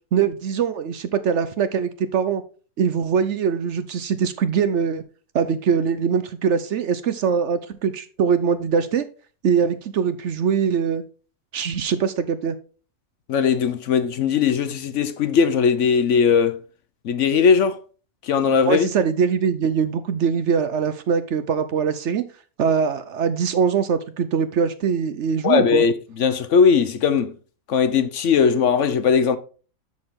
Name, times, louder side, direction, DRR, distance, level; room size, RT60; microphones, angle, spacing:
voice 1, 0.1-2.4 2.8-5.0 5.3-9.1 9.4-11.0 11.5-12.6 18.7-22.2 22.6-25.8, right 6 dB, 60° right, 0.9 m, -22 dB
voice 2, 13.3-16.6 17.0-17.8 18.2-18.9 25.4-27.3 27.7-29.4, left 6 dB, 65° left, 1.0 m, -19 dB
12.0 x 4.3 x 3.6 m
omnidirectional pair, 1.5 m